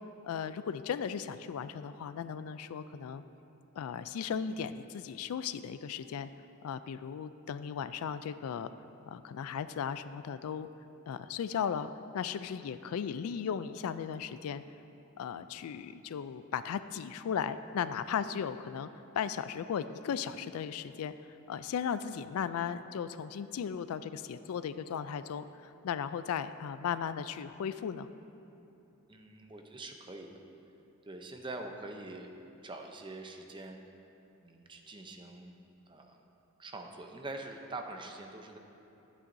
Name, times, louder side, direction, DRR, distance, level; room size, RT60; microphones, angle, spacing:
voice 1, 0.2-3.2 3.8-6.3 6.6-8.7 9.1-10.7 11.1-14.6 15.2-18.9 19.1-21.1 21.5-28.1, left 7 dB, 75° left, 13 dB, 0.3 m, -36 dB
voice 2, 29.1-30.3 31.0-32.3 32.6-33.8 34.4-35.5 35.9-36.2 36.6-38.6, right 2 dB, 20° right, 3 dB, 0.6 m, -44 dB
12.5 x 8.7 x 2.6 m, 3.0 s
head